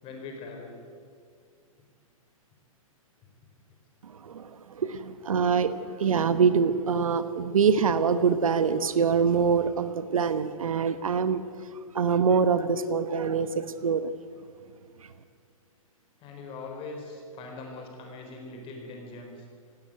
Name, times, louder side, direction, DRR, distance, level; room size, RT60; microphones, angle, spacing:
voice 1, 0.0-0.8 16.2-19.5, left 3 dB, 30° left, 2 dB, 4.2 m, -41 dB
voice 2, 4.0-11.4 11.9-14.1, right 6 dB, 70° right, 13 dB, 1.1 m, -25 dB
17.5 x 17.0 x 9.4 m, 2.1 s
figure-of-eight pair, 115°, 18 cm